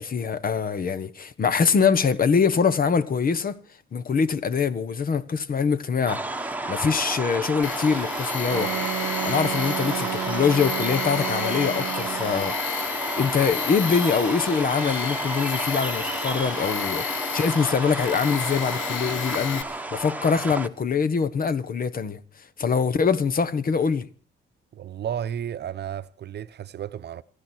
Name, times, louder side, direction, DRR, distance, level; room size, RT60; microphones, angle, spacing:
voice 1, 0.0-3.6 3.9-6.2 6.7-8.7 9.2-22.2 22.6-24.1, left 6 dB, 45° left, 1.3 m, -24 dB
sound 1, 6.1-20.7, right 2 dB, 10° right, 1.3 m, -31 dB
Tools, 7.6-19.6, left 8 dB, 80° left, 1.2 m, -32 dB
Wind instrument woodwind instrument, 8.5-12.6, right 13 dB, 90° right, 0.8 m, -32 dB
voice 2, 24.7-27.2, right 9 dB, 55° right, 0.9 m, -33 dB
27.0 x 11.5 x 4.6 m
cardioid pair, 90°, 20 cm